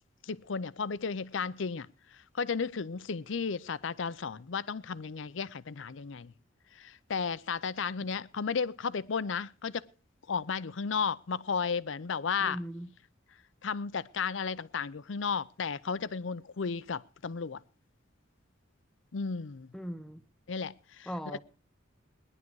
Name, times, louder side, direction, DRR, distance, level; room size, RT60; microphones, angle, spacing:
voice 1, 0.2-6.3 6.7-9.9 10.3-12.6 13.6-17.6 19.1-19.7 20.5-21.4, left 5 dB, 65° left, 0.6 m, -34 dB
voice 2, 12.4-12.9 19.7-20.2 21.1-21.4, equal, 5° left, 0.7 m, -39 dB
18.5 x 11.0 x 4.7 m
head